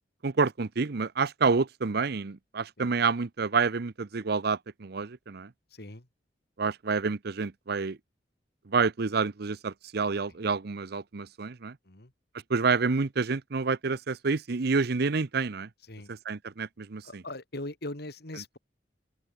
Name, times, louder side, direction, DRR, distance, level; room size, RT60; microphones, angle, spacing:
voice 1, 0.2-5.5 6.6-8.0 8.7-11.8 12.5-15.7 16.1-17.2, right 4 dB, 60° right, 0.7 m, -28 dB
voice 2, 5.7-6.1 11.9-12.1 15.9-16.1 17.0-18.6, left 2 dB, 60° left, 2.8 m, -40 dB
open air
head